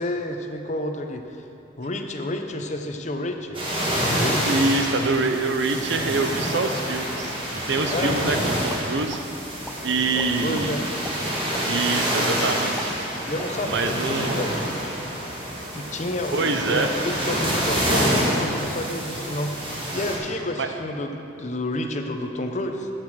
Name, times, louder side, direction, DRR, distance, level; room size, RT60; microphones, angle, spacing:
voice 1, 0.0-1.4 1.8-3.6 3.9-4.7 7.9-8.6 10.2-10.8 13.3-14.7 15.7-22.9, left 1 dB, 40° left, 5 dB, 0.6 m, -30 dB
sound 1, 3.5-20.2, equal, 30° right, 1.7 m, -27 dB
voice 2, 4.4-9.2 9.8-10.8 11.6-13.0 13.6-14.4 16.3-16.9 20.6-20.7, right 3 dB, 75° right, 6 dB, 0.7 m, -25 dB
sound 2, 8.7-9.2 9.6-9.8 10.2-10.7 11.0-11.1 11.5-11.6 12.1-12.2 12.6-13.8 14.1-14.2 14.6-14.9, equal, ahead, 0.3 m, -39 dB
8.2 x 7.2 x 6.2 m, 2.8 s
head